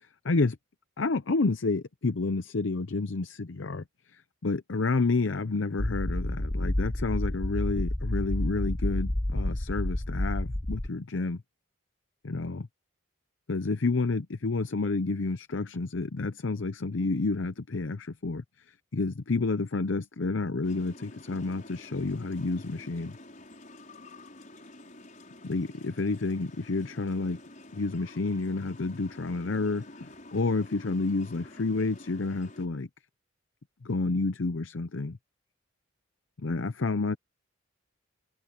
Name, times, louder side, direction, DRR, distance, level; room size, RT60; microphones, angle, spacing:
voice 1, 0.2-0.6 1.0-3.8 4.4-11.4 12.2-12.7 13.5-18.4 18.9-23.2 25.4-27.4 27.7-32.9 33.8-35.2 36.4-37.2, left 3 dB, 65° left, 0.7 m, -29 dB
sound 1, 5.8-10.9, left 1 dB, 10° left, 0.4 m, -30 dB
sound 2, 20.6-32.7, left 1 dB, 40° left, 5.9 m, -49 dB
head